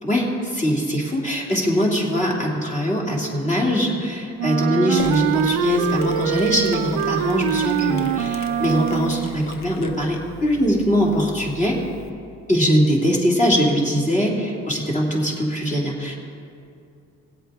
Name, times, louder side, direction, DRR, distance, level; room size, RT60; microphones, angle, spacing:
voice 1, 0.0-11.8 12.5-16.1, equal, 25° left, -2 dB, 2.8 m, -21 dB
Wind instrument woodwind instrument, 4.4-9.4, right 10 dB, 90° right, 0.5 m, -24 dB
Mechanisms, 5.0-12.1, left 5 dB, 65° left, 1.0 m, -38 dB
19.5 x 8.2 x 3.7 m, 2.5 s
cardioid pair, 90°, 30 cm